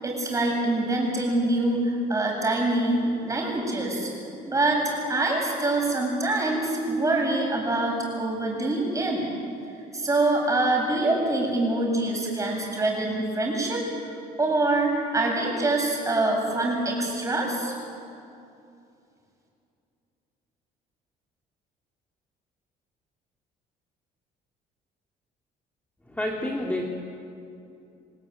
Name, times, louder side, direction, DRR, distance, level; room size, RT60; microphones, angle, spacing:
voice 1, 0.0-4.1 4.4-9.2 9.9-13.8 14.4-17.7, right 2 dB, 20° right, 0 dB, 7.8 m, -25 dB
voice 2, 26.1-26.8, left 1 dB, 10° left, -1 dB, 2.7 m, -28 dB
28.5 x 17.5 x 9.4 m, 2.6 s
cardioid pair, 110°, 17 cm